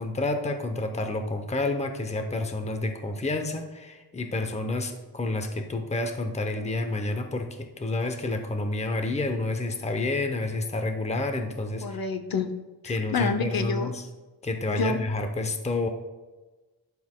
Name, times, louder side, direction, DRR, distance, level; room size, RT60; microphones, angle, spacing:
voice 1, 0.0-12.0 12.9-14.0 14.4-15.9, left 2 dB, 15° left, 6 dB, 0.7 m, -29 dB
voice 2, 11.8-12.5 12.8-13.9 14.7-15.0, left 5 dB, 60° left, 8 dB, 0.7 m, -28 dB
12.0 x 6.9 x 2.2 m, 1.2 s
wide cardioid pair, 130°, 41 cm